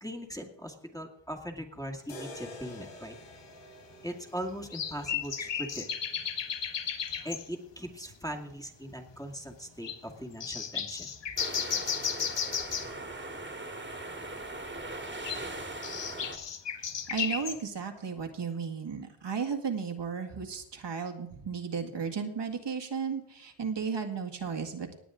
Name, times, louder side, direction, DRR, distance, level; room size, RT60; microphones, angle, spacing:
voice 1, 0.0-3.2 4.0-5.9 7.2-11.1 16.0-16.2 16.6-16.7 17.8-18.0 24.4-24.5, equal, 5° left, 3 dB, 2.1 m, -40 dB
sound 1, 2.1-6.2, left 1 dB, 85° left, 3.4 m, -48 dB
sound 2, 2.5-2.6 3.3-3.4 4.7-7.5 8.1-8.2 8.5-8.6 8.9-9.3 9.8-10.0 10.4-13.0 15.1-17.6, left 7 dB, 60° left, 1.4 m, -34 dB
sound 3, 11.4-16.4, right 2 dB, 25° right, 2.0 m, -40 dB
voice 2, 17.1-24.9, right 6 dB, 60° right, 4 dB, 2.0 m, -34 dB
18.0 x 9.5 x 3.8 m, 0.74 s
cardioid pair, 70°, 48 cm